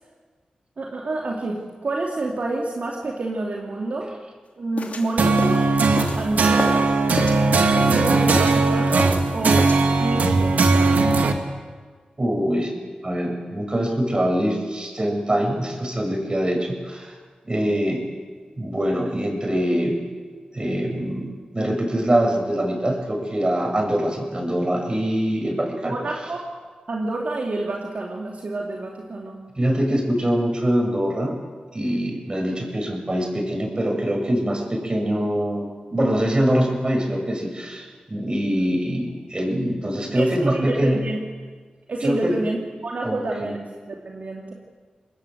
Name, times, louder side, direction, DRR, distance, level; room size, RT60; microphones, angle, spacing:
voice 1, 0.8-4.1 4.6-5.7 6.1-6.9 7.8-9.7 10.0-11.2 25.8-26.4 26.9-29.4 38.5-38.6 40.1-41.2 41.9-42.6 42.8-43.6 43.9-44.5, right 2 dB, 65° right, -1 dB, 2.8 m, -28 dB
sound 1, 4.8-6.9 7.2-8.0 8.3-9.3 9.6-9.9, left 3 dB, 65° left, 3.0 m, -31 dB
sound 2, 5.2-11.3, right 3 dB, 85° right, 2.1 m, -19 dB
voice 2, 12.2-12.7 13.0-17.2 17.4-18.0 18.6-20.0 20.5-26.0 29.6-31.4 31.7-41.0 42.0-42.4 43.0-43.5, equal, 35° right, 2 dB, 7.7 m, -23 dB
27.5 x 20.5 x 8.0 m, 1.5 s
cardioid pair, 45°, 3 cm